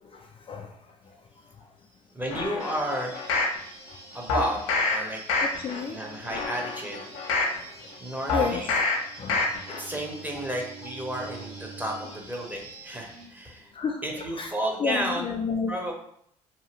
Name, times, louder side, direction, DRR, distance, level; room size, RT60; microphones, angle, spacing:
voice 1, 0.0-1.0 1.6-1.7 4.4-4.5 5.4-6.0 7.2-7.9 8.3-8.9 9.2-9.5 13.7-14.0 14.3-14.5 14.8-15.7, left 5 dB, 30° left, 1 dB, 0.4 m, -32 dB
voice 2, 2.1-3.1 4.1-5.2 5.9-7.0 8.0-8.7 9.8-13.7 14.0-15.4 15.7-15.9, right 1 dB, 10° right, 0 dB, 0.9 m, -32 dB
sound 1, 2.3-3.6 4.3-5.0 5.3-5.8 6.2-7.6 8.3-9.0 9.3-9.8 10.2-10.3, left 3 dB, 80° left, 0.6 m, -27 dB
sound 2, 2.6-13.3, right 1 dB, 90° right, 1.0 m, -47 dB
Bowed string instrument, 8.7-12.3, right 5 dB, 55° right, 0.7 m, -46 dB
2.7 x 2.2 x 3.1 m, 0.69 s
hypercardioid pair, 60°, 17 cm